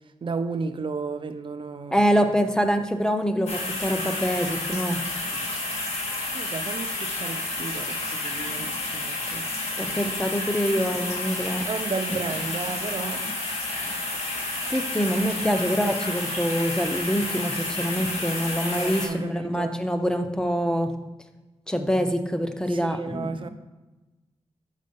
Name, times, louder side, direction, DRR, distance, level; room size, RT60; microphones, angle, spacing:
voice 1, 0.2-2.1 6.3-9.5 9.8-10.1 11.7-13.2 18.6-19.8 22.7-23.5, right 4 dB, 50° right, 0.6 m, -33 dB
voice 2, 1.9-5.0 9.8-11.6 12.1-12.2 12.9-13.3 14.7-20.9 21.7-23.5, equal, 5° left, 0.6 m, -25 dB
sound 1, 3.5-19.1, left 2 dB, 85° left, 1.7 m, -30 dB
6.5 x 5.1 x 5.3 m
wide cardioid pair, 115°, 11 cm